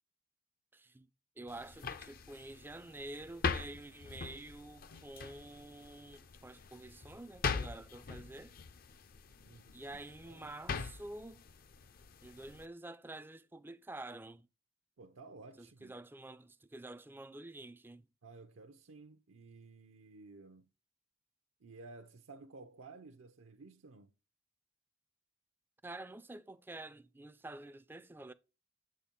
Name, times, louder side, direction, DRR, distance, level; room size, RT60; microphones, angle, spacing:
voice 1, 0.7-1.1 1.4-8.5 9.7-11.4 12.2-14.5 15.6-18.0 25.8-28.3, right 2 dB, 10° right, 0.3 m, -48 dB
sound 1, 1.5-12.7, left 5 dB, 45° left, 0.5 m, -42 dB
voice 2, 10.2-10.8 15.0-15.9 18.2-20.7 21.6-24.1, right 3 dB, 80° right, 0.6 m, -54 dB
7.7 x 4.3 x 3.6 m
head